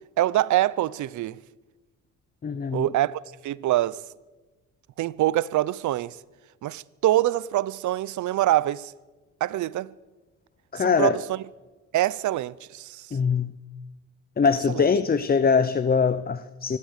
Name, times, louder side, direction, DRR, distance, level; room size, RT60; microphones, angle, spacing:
voice 1, 0.2-1.4 2.7-4.0 5.0-6.2 6.6-8.9 9.4-9.9 10.8-11.4 11.9-13.1 14.7-14.9, right 14 dB, 75° right, 0.7 m, -25 dB
voice 2, 2.4-2.8 10.7-11.2 13.1-13.5 14.4-16.8, left 5 dB, 30° left, 0.9 m, -22 dB
25.0 x 17.0 x 6.6 m
cardioid pair, 90°, 30 cm